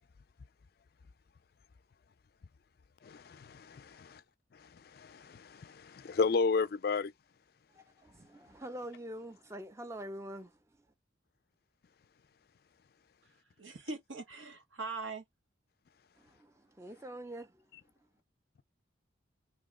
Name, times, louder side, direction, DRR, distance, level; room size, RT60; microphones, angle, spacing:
voice 1, 3.0-4.2 4.5-7.1, left 4 dB, 50° left, 0.4 m, -33 dB
voice 2, 7.7-10.5 16.2-17.6, right 1 dB, 15° right, 0.5 m, -45 dB
voice 3, 13.6-15.2, right 3 dB, 85° right, 1.4 m, -41 dB
2.9 x 2.9 x 3.7 m
head